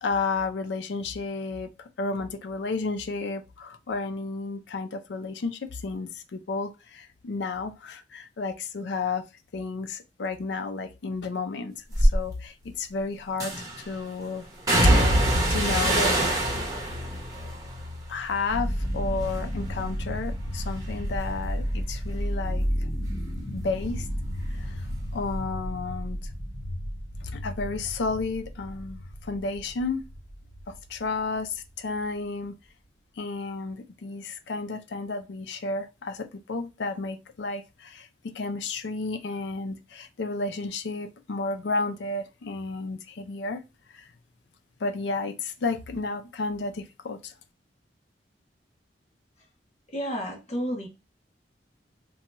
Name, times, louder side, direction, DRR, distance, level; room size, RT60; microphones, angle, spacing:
voice 1, 0.0-9.2 9.5-11.7 12.0-14.5 15.5-16.5 18.1-22.9 23.5-24.1 24.6-24.7 25.1-26.2 27.2-30.0 30.7-32.5 33.2-38.1 38.3-43.6 43.9-44.0 44.8-47.3, left 3 dB, 75° left, 0.5 m, -32 dB
sound 1, 11.9-12.2 13.4-13.9 14.7-18.9 19.2-19.8 20.2-23.5 23.8-24.9 25.2-25.3, right 1 dB, 20° right, 1.0 m, -25 dB
sound 2, 18.5-32.5, equal, 10° left, 1.3 m, -33 dB
voice 2, 49.9-50.9, equal, 40° left, 0.9 m, -31 dB
2.8 x 2.2 x 2.9 m
head